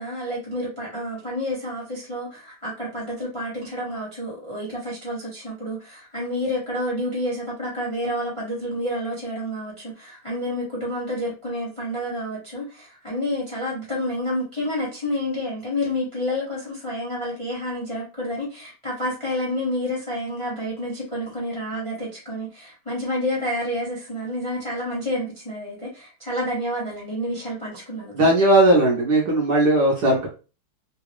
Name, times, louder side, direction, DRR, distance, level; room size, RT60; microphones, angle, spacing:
voice 1, 0.0-28.3, left 1 dB, 20° left, -4 dB, 0.9 m, -29 dB
voice 2, 28.1-30.3, right 1 dB, 60° right, -3 dB, 1.3 m, -17 dB
3.7 x 2.4 x 3.0 m, 0.32 s
omnidirectional pair, 2.4 m